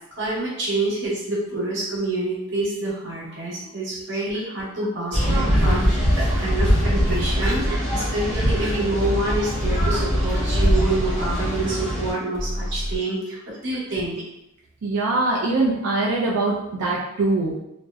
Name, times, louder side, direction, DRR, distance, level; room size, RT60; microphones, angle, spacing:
voice 1, 0.2-14.2, right 2 dB, 55° right, -7 dB, 0.9 m, -27 dB
sound 1, 5.1-12.1, equal, ahead, 0.8 m, -22 dB
sound 2, 5.6-7.9 8.6-9.1 9.6-11.7 12.3-13.0, equal, 20° left, 0.3 m, -31 dB
voice 2, 14.8-17.6, right 2 dB, 90° right, -4 dB, 0.4 m, -23 dB
2.6 x 2.0 x 2.3 m, 0.85 s
head